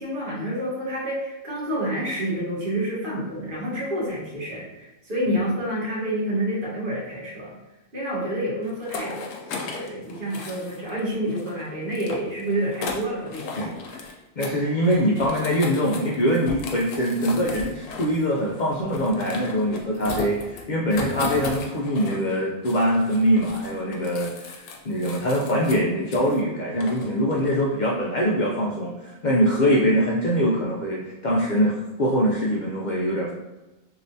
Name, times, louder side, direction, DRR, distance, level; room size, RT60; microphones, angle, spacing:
voice 1, 0.0-7.6 7.9-14.1, right 1 dB, 45° right, -6 dB, 1.3 m, -29 dB
sound 1, 8.7-11.0 11.3-14.1 14.4-14.6 14.8-22.3 22.6-26.4 26.8-27.7, left 4 dB, 80° left, 1.0 m, -36 dB
voice 2, 14.4-33.3, equal, 65° left, -3 dB, 0.4 m, -23 dB
3.2 x 2.8 x 2.6 m, 1.0 s
omnidirectional pair, 1.3 m